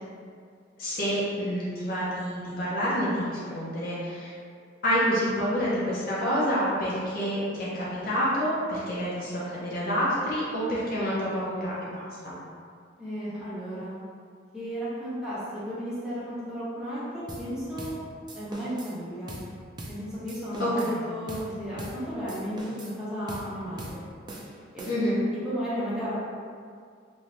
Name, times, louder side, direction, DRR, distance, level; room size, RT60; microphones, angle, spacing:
voice 1, 0.8-4.3 4.8-12.4 20.6-21.0 24.9-25.2, equal, 50° left, -7 dB, 0.6 m, -28 dB
voice 2, 13.0-13.9 14.5-17.9 18.3-19.4 19.9-24.0 24.7-24.9 25.4-26.2, equal, 5° right, -12 dB, 0.9 m, -34 dB
sound 1, 17.3-17.5 17.8-18.0 18.3-18.9 19.3-19.5 19.8-20.0 20.3-21.0 21.3-21.5 21.8-22.0 22.3-23.0 23.3-23.5 23.8-24.0 24.3-25.2, right 1 dB, 20° right, 0.4 m, -41 dB
2.6 x 2.6 x 3.2 m, 2.1 s
head